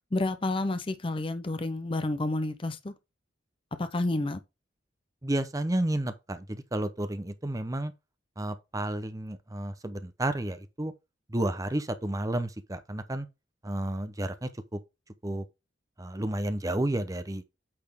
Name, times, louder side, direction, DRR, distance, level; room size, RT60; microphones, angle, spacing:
voice 1, 0.1-2.9 3.8-4.4, left 2 dB, 30° left, 0.6 m, -30 dB
voice 2, 5.2-7.9 8.4-10.9 11.3-13.3 13.6-14.8 15.2-15.4 16.0-17.4, right 1 dB, 20° right, 0.7 m, -31 dB
8.7 x 4.2 x 3.5 m
head